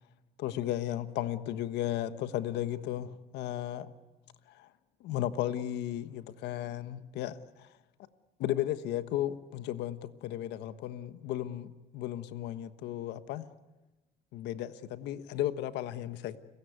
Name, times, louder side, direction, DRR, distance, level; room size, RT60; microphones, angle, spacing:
voice 1, 0.4-3.9 4.5-4.7 5.0-7.7 8.4-13.5 14.3-16.4, left 12 dB, 85° left, 1.3 m, -35 dB
29.5 x 16.5 x 9.5 m
cardioid pair, 110°, 17 cm